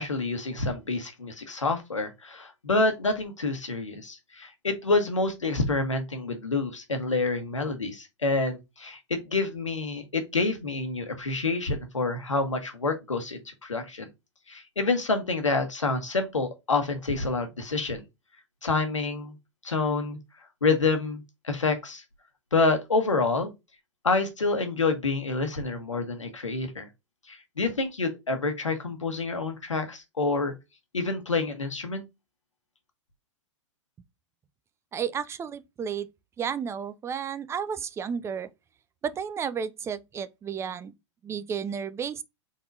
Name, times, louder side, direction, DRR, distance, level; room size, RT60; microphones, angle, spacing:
voice 1, 0.0-14.1 14.5-18.0 18.6-19.4 19.6-20.2 20.6-22.0 22.5-23.5 24.0-26.9 27.3-30.5 30.9-32.0, left 3 dB, 90° left, 1.2 m, -28 dB
voice 2, 34.9-36.1 36.4-38.5 39.0-40.9 41.2-42.2, right 7 dB, 15° right, 0.4 m, -32 dB
4.2 x 4.1 x 2.6 m
figure-of-eight pair, 100°, 16 cm